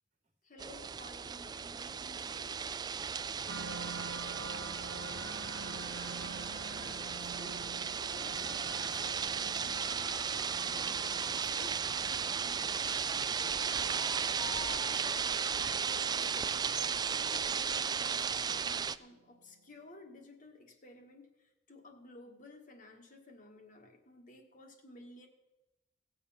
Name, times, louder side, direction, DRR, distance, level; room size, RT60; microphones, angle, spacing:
voice 1, 0.4-2.6 5.8-7.6 8.1-14.0 15.0-25.3, left 1 dB, 45° left, 3 dB, 1.6 m, -55 dB
sound 1, 0.6-19.0, right 6 dB, 20° right, 0.3 m, -35 dB
sound 2, 3.2-15.3, left 3 dB, 20° left, 0.7 m, -52 dB
voice 2, 3.3-5.2, right 1 dB, 40° right, 4 dB, 1.6 m, -60 dB
sound 3, 3.5-18.7 19.2-19.6, right 3 dB, 85° right, 0.6 m, -49 dB
17.5 x 6.9 x 5.7 m, 0.97 s
head